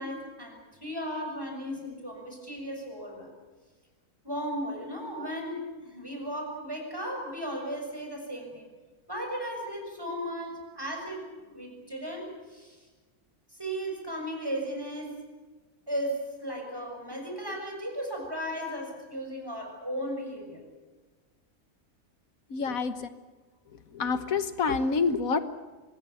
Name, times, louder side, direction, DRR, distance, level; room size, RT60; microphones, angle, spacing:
voice 1, 0.0-3.3 4.2-8.7 9.1-12.9 13.5-15.2 15.9-20.6, equal, 15° right, 2 dB, 6.9 m, -36 dB
voice 2, 22.5-23.1 23.9-25.4, left 4 dB, 80° left, 11 dB, 1.7 m, -27 dB
25.0 x 20.0 x 8.5 m, 1.3 s
omnidirectional pair, 1.4 m